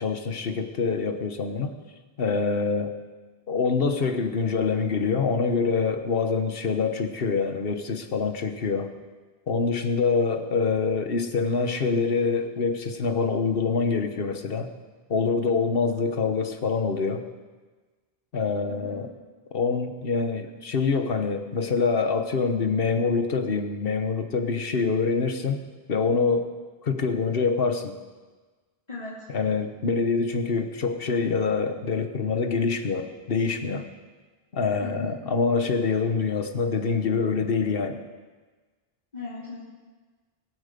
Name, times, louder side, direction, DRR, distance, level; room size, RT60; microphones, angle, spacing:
voice 1, 0.0-1.7 2.2-2.9 3.5-8.9 9.5-14.7 15.1-17.2 18.3-19.1 19.5-25.6 25.9-26.5 26.8-28.0 29.3-33.9 34.5-38.0, left 4 dB, 65° left, 7 dB, 1.4 m, -25 dB
voice 2, 18.7-19.0 28.9-29.3 34.8-35.2 39.1-39.6, left 4 dB, 40° left, -8 dB, 2.9 m, -37 dB
22.5 x 8.0 x 6.8 m, 1.3 s
omnidirectional pair, 1.0 m